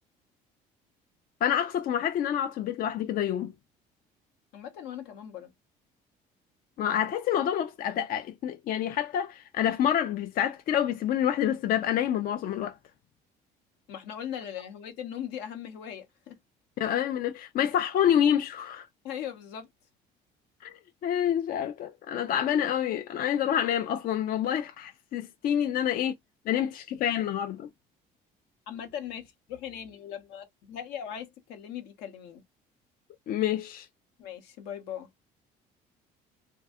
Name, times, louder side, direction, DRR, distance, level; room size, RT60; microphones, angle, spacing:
voice 1, 1.4-3.5 6.8-12.7 16.8-18.9 20.6-20.7 21.0-26.1 26.5-27.7 33.3-33.9, left 10 dB, 55° left, 0.4 m, -27 dB
voice 2, 4.5-5.5 13.9-16.4 19.0-19.7 28.7-32.4 34.2-35.1, left 9 dB, 85° left, 0.9 m, -39 dB
2.7 x 2.2 x 3.4 m
cardioid pair, 95°, 17 cm